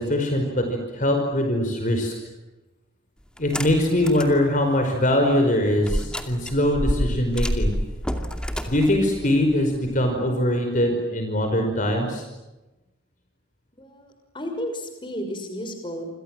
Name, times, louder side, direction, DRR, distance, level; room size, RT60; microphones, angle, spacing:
voice 1, 0.0-2.1 3.4-7.7 8.7-12.2, left 1 dB, 40° left, 4 dB, 5.2 m, -22 dB
sound 1, 3.4-4.4 4.8-4.9 5.8-10.1, equal, 5° left, 2.5 m, -28 dB
voice 2, 13.7-16.1, equal, 25° left, 5 dB, 6.0 m, -33 dB
28.0 x 27.0 x 7.7 m, 1.0 s
head